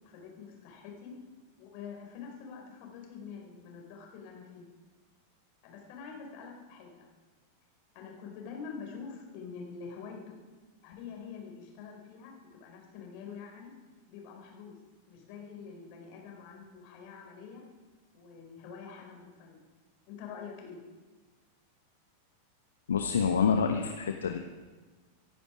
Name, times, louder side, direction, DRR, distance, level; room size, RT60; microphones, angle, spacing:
voice 1, 0.0-1.2 1.6-4.7 5.6-7.1 7.9-10.4 10.8-13.8 14.1-14.7 15.1-17.7 18.1-19.7 20.0-20.8, left 6 dB, 45° left, 1 dB, 4.6 m, -46 dB
voice 2, 22.9-24.4, left 6 dB, 70° left, 5 dB, 1.0 m, -27 dB
25.5 x 11.0 x 5.0 m, 1.3 s
figure-of-eight pair, 90°, 0 cm